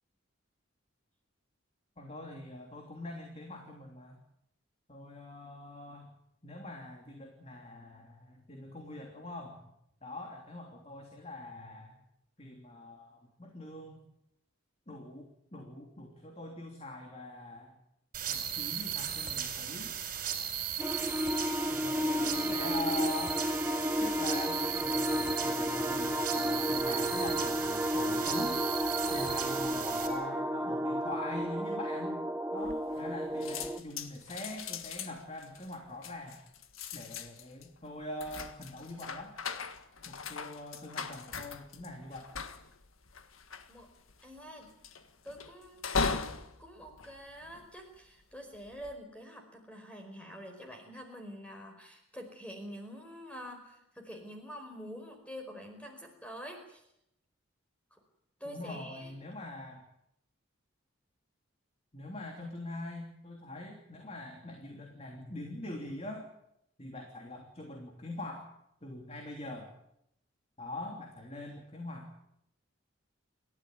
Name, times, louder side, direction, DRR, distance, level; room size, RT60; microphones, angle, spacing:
voice 1, 2.0-4.2 4.9-6.1 6.4-9.6 10.0-12.0 12.4-14.0 14.9-17.8 18.3-19.9 21.7-23.4 24.0-28.6 29.1-32.2 32.5-36.4 36.9-39.3 40.1-42.3 58.4-59.8 61.9-66.3 66.8-68.5 68.8-69.7 70.6-72.1, left 1 dB, 30° left, 2 dB, 3.2 m, -43 dB
sound 1, 18.1-30.1, right 9 dB, 40° right, 4.6 m, -36 dB
sound 2, 20.8-33.8, equal, 10° right, 0.8 m, -32 dB
voice 2, 29.8-30.5 43.7-43.9 44.2-44.7 45.2-46.2 46.6-56.8 57.9-58.0 58.4-59.1, equal, 5° left, 4 dB, 4.8 m, -47 dB
sound 3, 32.6-33.2 33.4-48.0 48.5-48.9, left 5 dB, 85° left, 1.7 m, -39 dB
29.5 x 13.5 x 9.5 m, 0.81 s
head